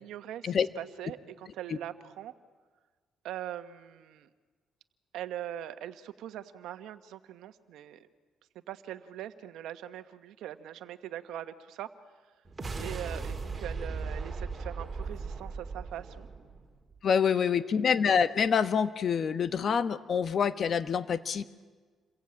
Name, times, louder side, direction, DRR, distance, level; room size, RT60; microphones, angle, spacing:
voice 1, 0.0-2.3 3.2-4.3 5.1-8.1 8.7-11.9 12.2-12.3 12.8-16.3 17.5-17.7, right 11 dB, 85° right, 10 dB, 1.4 m, -42 dB
sound 1, 12.4-17.0, right 4 dB, 25° right, 4.0 m, -37 dB
voice 2, 17.0-21.6, left 6 dB, 55° left, 12 dB, 1.3 m, -26 dB
28.5 x 22.0 x 8.9 m, 1.4 s
cardioid pair, 90°, 0 cm